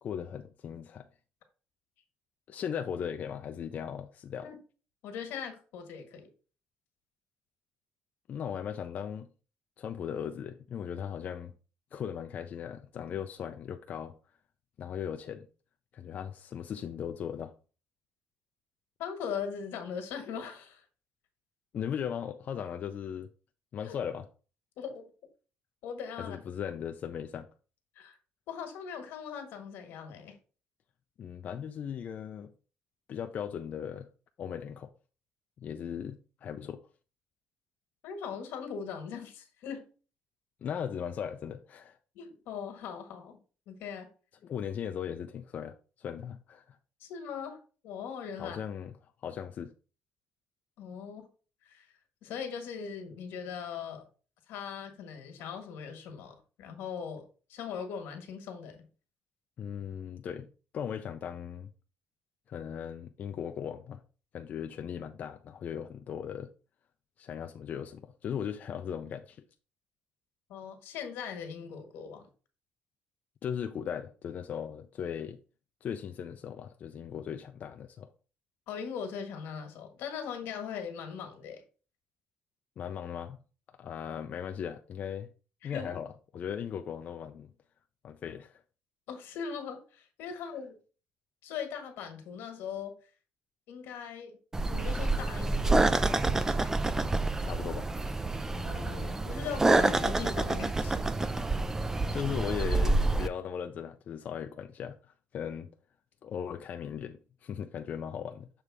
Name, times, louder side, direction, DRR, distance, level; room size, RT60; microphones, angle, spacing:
voice 1, 0.0-1.1 2.5-4.5 8.3-9.3 9.8-11.5 11.9-14.2 14.8-15.5 15.9-17.5 21.7-23.3 23.7-24.3 26.2-27.5 31.2-32.5 33.1-34.1 34.4-34.9 35.6-36.8 40.6-42.0 44.4-46.8 48.4-48.9 49.2-49.7 59.6-61.7 62.5-64.0 64.3-66.5 67.2-69.4 73.4-75.4 75.8-78.1 82.8-83.4 83.8-85.3 85.6-87.5 88.0-88.6 97.4-97.9 102.1-105.7 106.2-108.5, left 8 dB, 50° left, 0.4 m, -38 dB
voice 2, 5.0-6.3 19.0-20.8 23.8-23.9 24.8-25.1 25.8-26.4 27.9-28.2 28.5-30.4 38.0-39.8 42.1-43.4 43.7-44.1 47.0-47.6 47.8-48.6 50.8-51.3 51.6-51.9 52.2-54.1 54.5-57.2 57.5-58.9 70.5-72.3 78.7-81.6 85.6-85.9 89.1-90.8 91.4-92.9 93.7-94.4 94.7-96.7 98.5-101.0, left 7 dB, 90° left, 1.6 m, -40 dB
sound 1, 94.5-103.3, right 2 dB, 15° right, 0.4 m, -28 dB
6.8 x 3.3 x 4.7 m
cardioid pair, 125°, 4 cm